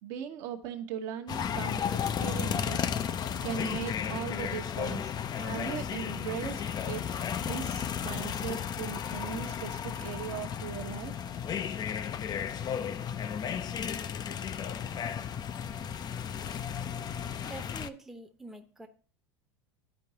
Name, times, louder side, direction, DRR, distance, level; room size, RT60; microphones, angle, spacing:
voice 1, 0.0-7.0 7.5-11.1, right 8 dB, 55° right, 4 dB, 0.9 m, -39 dB
sound 1, 1.3-17.9, left 8 dB, 30° left, 0.4 m, -34 dB
voice 2, 17.5-18.9, right 2 dB, ahead, 4 dB, 0.8 m, -45 dB
12.5 x 4.6 x 2.8 m, 0.42 s
hypercardioid pair, 90°, 15 cm